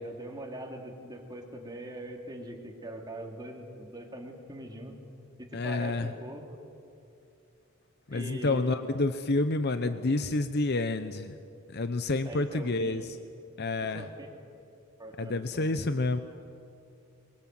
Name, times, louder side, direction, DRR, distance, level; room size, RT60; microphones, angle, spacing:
voice 1, 0.0-5.0 5.4-6.5 8.1-8.8 12.2-13.0 13.8-14.3 15.0-15.9, right 1 dB, 20° right, 2 dB, 2.7 m, -42 dB
voice 2, 5.5-6.1 8.1-11.4 11.7-13.0 13.6-14.0 15.2-16.2, left 2 dB, 50° left, 9 dB, 0.8 m, -29 dB
25.0 x 22.5 x 7.6 m, 2.6 s
head